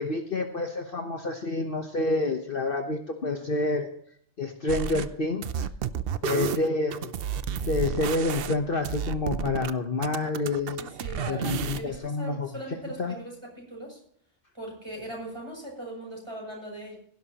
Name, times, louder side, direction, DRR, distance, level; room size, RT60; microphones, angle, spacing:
voice 1, 0.0-3.9 4.4-5.7 6.2-7.1 7.7-10.8 11.3-12.5 13.0-13.1, left 3 dB, 45° left, 4 dB, 1.2 m, -28 dB
sound 1, 4.7-5.1 5.4-9.7 10.0-12.0, right 8 dB, 60° right, 0.7 m, -32 dB
voice 2, 10.8-14.0 14.5-17.0, right 1 dB, 20° right, -1 dB, 6.9 m, -40 dB
16.5 x 12.0 x 2.9 m, 0.64 s
omnidirectional pair, 1.3 m